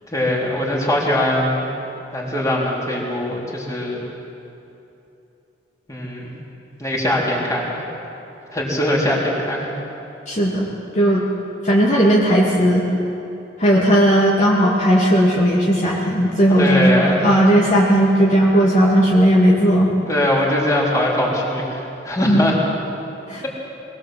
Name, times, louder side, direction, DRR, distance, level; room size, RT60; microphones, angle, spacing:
voice 1, 0.1-1.7 2.1-4.0 5.9-6.3 6.8-7.8 8.5-9.7 16.6-17.2 20.1-22.6 23.4-23.5, left 1 dB, 20° left, -4 dB, 4.2 m, -21 dB
voice 2, 10.3-11.2 11.6-12.9 13.6-19.9 22.2-22.5 23.3-23.6, equal, 40° left, -5 dB, 2.6 m, -16 dB
22.5 x 21.0 x 7.9 m, 2.9 s
head